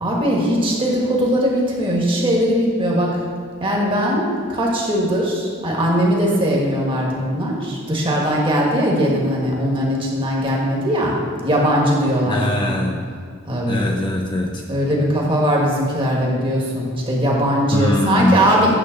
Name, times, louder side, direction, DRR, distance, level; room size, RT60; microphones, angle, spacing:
voice 1, 0.0-3.2 3.6-11.2 11.4-12.8 13.5-13.9 14.7-18.7, equal, 25° right, -2 dB, 1.4 m, -20 dB
voice 2, 12.2-13.1 13.7-14.6 17.7-18.4, left 1 dB, 25° left, 1 dB, 0.4 m, -22 dB
9.2 x 3.5 x 6.4 m, 2.1 s
head